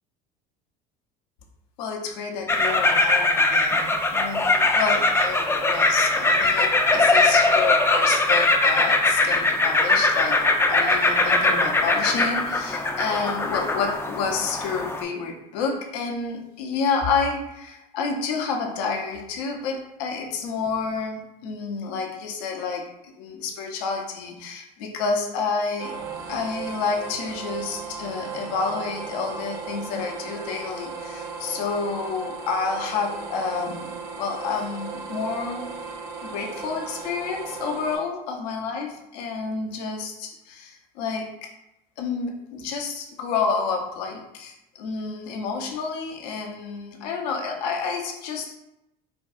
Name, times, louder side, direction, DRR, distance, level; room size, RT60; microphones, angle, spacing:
voice 1, 1.8-10.4 10.7-25.9 26.3-35.6 36.2-41.5 42.0-48.5, left 5 dB, 75° left, 2 dB, 0.7 m, -29 dB
sound 1, 2.5-15.0, left 2 dB, 10° left, 0.4 m, -21 dB
sound 2, 25.8-38.0, right 5 dB, 70° right, 0.7 m, -36 dB
4.5 x 2.3 x 2.6 m, 0.87 s
hypercardioid pair, 80°, 21 cm